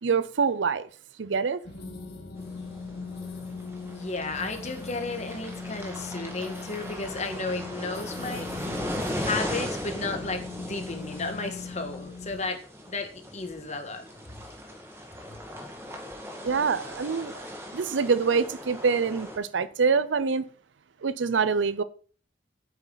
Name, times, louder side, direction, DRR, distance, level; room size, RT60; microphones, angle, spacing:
voice 1, 0.0-0.9 1.2-1.6 16.4-17.4 17.7-20.4 21.0-21.8, right 5 dB, 80° right, 0.6 m, -25 dB
sound 1, 1.6-12.4, left 4 dB, 60° left, 1.9 m, -40 dB
sound 2, 2.4-19.4, equal, 15° right, 1.9 m, -38 dB
voice 2, 3.9-8.8 9.1-14.1 15.3-15.4, left 3 dB, 40° left, 1.5 m, -34 dB
9.0 x 8.0 x 4.0 m
head